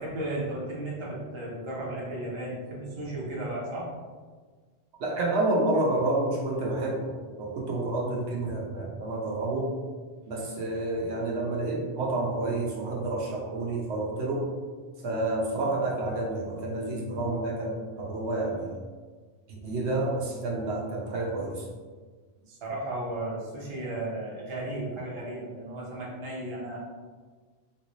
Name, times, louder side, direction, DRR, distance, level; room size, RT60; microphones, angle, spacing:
voice 1, 0.0-3.9 22.5-26.8, right 1 dB, 30° right, -5 dB, 0.7 m, -34 dB
voice 2, 5.0-9.7 10.3-14.5 15.0-18.8 19.5-21.7, right 2 dB, 75° right, -3 dB, 0.9 m, -29 dB
3.3 x 2.6 x 3.0 m, 1.5 s
omnidirectional pair, 1.2 m